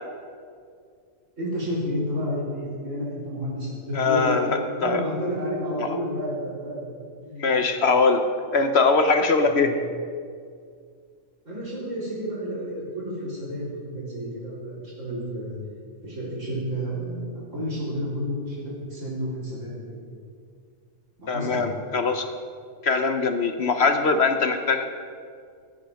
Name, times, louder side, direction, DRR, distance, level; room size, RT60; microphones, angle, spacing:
voice 1, 1.4-4.5 4.8-6.8 7.2-7.5 9.4-9.7 11.4-15.6 16.0-17.2 17.5-18.6 18.9-20.0 21.2-21.6, equal, 65° right, -7 dB, 4.8 m, -31 dB
voice 2, 3.9-5.0 5.8-5.9 7.4-9.8 21.3-22.3 22.8-24.9, left 4 dB, 55° left, 7 dB, 1.0 m, -22 dB
16.5 x 8.6 x 6.4 m, 2.2 s
omnidirectional pair, 1.4 m